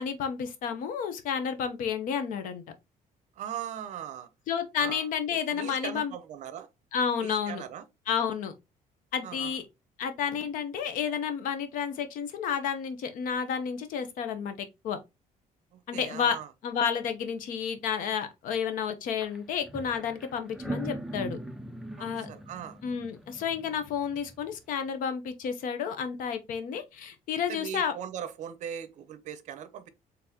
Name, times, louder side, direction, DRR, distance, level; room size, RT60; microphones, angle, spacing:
voice 1, 0.0-2.6 4.5-6.1 6.9-7.6 8.1-8.5 9.1-9.6 10.0-15.0 15.9-16.4 16.6-21.4 22.0-22.3 22.8-27.9, left 7 dB, 65° left, 0.8 m, -31 dB
voice 2, 3.4-4.3 4.8-5.1 5.3-6.7 7.2-7.8 9.2-9.6 15.7-16.5 22.0-22.8 27.5-29.9, right 9 dB, 55° right, 0.6 m, -39 dB
sound 1, 19.2-19.4 19.6-24.5, right 1 dB, ahead, 0.3 m, -40 dB
4.0 x 3.4 x 2.8 m
cardioid pair, 180°, 15 cm